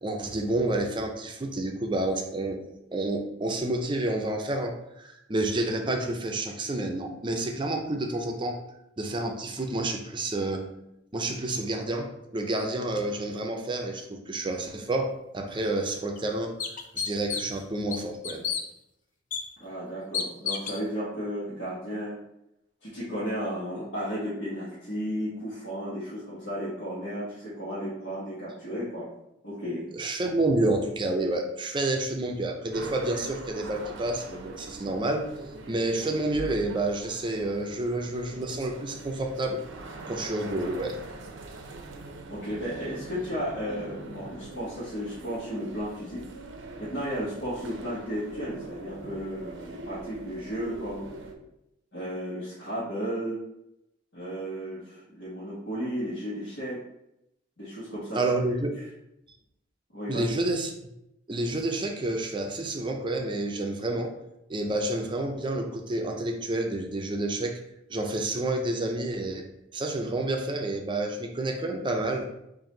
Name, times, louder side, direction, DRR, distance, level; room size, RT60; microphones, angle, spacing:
voice 1, 0.0-2.6 2.9-8.6 9.0-10.7 11.1-16.5 16.9-18.4 29.9-35.3 35.7-39.6 40.1-41.0 58.1-58.8 60.1-60.7 61.3-64.1 64.5-67.6 67.9-72.3, right 2 dB, 25° right, 3 dB, 0.5 m, -29 dB
sound 1, 15.6-15.7 16.2-16.3 16.6-17.6 17.9-18.6 19.3-19.4 20.1-20.8, left 6 dB, 45° left, 0.4 m, -31 dB
voice 2, 19.6-22.2 22.8-29.1 29.4-29.8 42.3-46.3 46.8-51.0 51.9-53.4 54.1-56.8 57.6-58.2 59.9-60.3, equal, 70° left, -11 dB, 1.4 m, -34 dB
sound 2, 32.7-51.3, right 2 dB, 80° right, 0.6 m, -43 dB
sound 3, 36.3-37.3, equal, 5° left, 1.1 m, -41 dB
4.2 x 2.6 x 3.8 m, 0.84 s
head